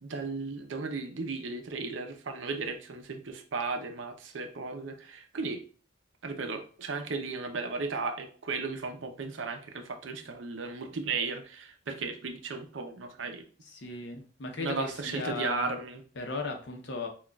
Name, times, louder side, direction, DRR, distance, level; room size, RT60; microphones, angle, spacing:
voice 1, 0.0-5.6 6.2-13.4 14.6-16.0, right 4 dB, 70° right, 6 dB, 0.6 m, -35 dB
voice 2, 13.6-15.7 16.2-17.1, left 3 dB, 60° left, 3 dB, 0.7 m, -36 dB
6.1 x 2.3 x 2.3 m, 0.41 s
head